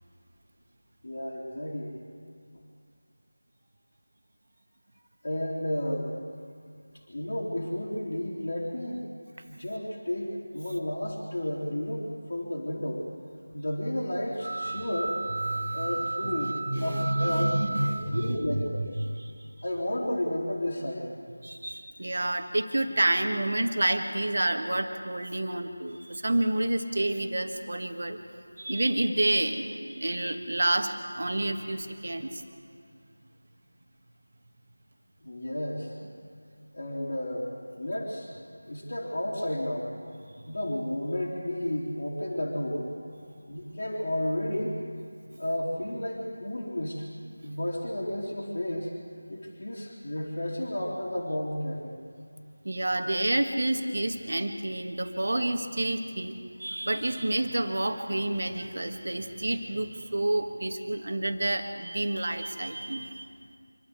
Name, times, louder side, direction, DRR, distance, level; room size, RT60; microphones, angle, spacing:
voice 1, 1.0-1.9 5.2-6.1 7.1-9.1 9.5-13.0 13.5-15.2 15.7-16.5 16.8-17.5 17.8-18.9 19.6-21.1 35.2-35.9 36.7-37.5 37.7-38.3 38.7-39.9 40.5-42.9 43.5-44.8 45.4-47.0 47.4-48.9 49.3-52.0, left 1 dB, 55° left, -5 dB, 3.5 m, -32 dB
sound 1, 14.4-18.5, right 2 dB, 35° right, 2.9 m, -34 dB
voice 2, 15.5-16.4 16.7-19.4 21.4-28.2 28.6-32.4 52.6-63.3, right 1 dB, 55° right, 6 dB, 1.8 m, -29 dB
26.0 x 13.0 x 8.3 m, 2.2 s
figure-of-eight pair, 170°, 0 cm